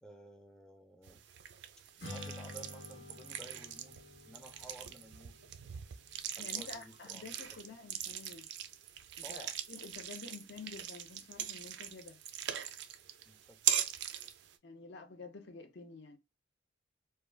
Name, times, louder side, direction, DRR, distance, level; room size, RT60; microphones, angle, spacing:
voice 1, 0.0-1.3 2.1-4.0 4.2-5.4 6.3-7.2 7.5-7.6 9.2-9.6 13.3-13.6, right 1 dB, 5° left, 0.4 m, -54 dB
sound 1, 1.0-14.5, right 11 dB, 60° right, 0.4 m, -41 dB
Strum, 2.0-8.3, left 2 dB, 80° left, 1.2 m, -51 dB
voice 2, 6.4-8.5 9.3-12.2 14.6-16.2, left 4 dB, 60° left, 0.5 m, -49 dB
2.3 x 2.2 x 3.1 m
head